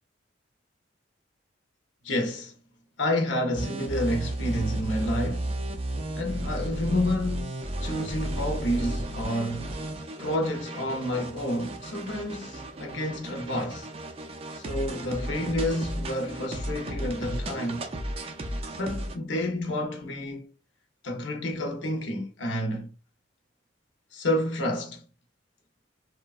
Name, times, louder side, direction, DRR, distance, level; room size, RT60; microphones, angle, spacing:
voice 1, 2.0-2.5 3.0-5.5 6.1-9.7 10.2-13.9 14.5-17.9 18.8-20.5 21.0-22.9 24.1-25.0, left 1 dB, 75° left, 0.7 m, -29 dB
sound 1, 3.5-19.2, right 1 dB, 30° right, 0.3 m, -34 dB
3.0 x 2.2 x 2.4 m
head